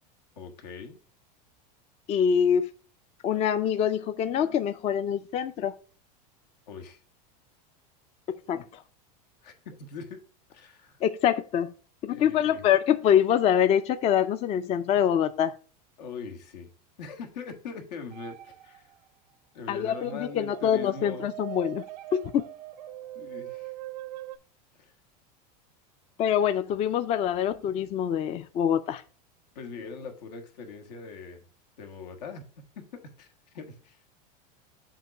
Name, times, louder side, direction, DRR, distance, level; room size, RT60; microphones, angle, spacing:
voice 1, 0.3-1.0 6.7-7.0 9.4-10.2 10.5-11.0 12.0-12.6 16.0-16.7 17.0-18.9 19.5-21.3 23.1-23.7 24.8-24.9 29.5-31.4 31.8-32.4 32.7-33.3 33.5-34.0, left 5 dB, 85° left, 1.6 m, -41 dB
voice 2, 2.1-2.7 3.2-5.7 8.5-8.8 11.0-11.7 12.0-15.5 19.7-21.8 22.1-22.4 26.2-29.0, left 9 dB, 30° left, 0.4 m, -25 dB
sound 1, 18.1-19.1 20.0-24.4, right 16 dB, 80° right, 0.6 m, -42 dB
7.5 x 3.0 x 5.8 m
supercardioid pair, 130°, 21 cm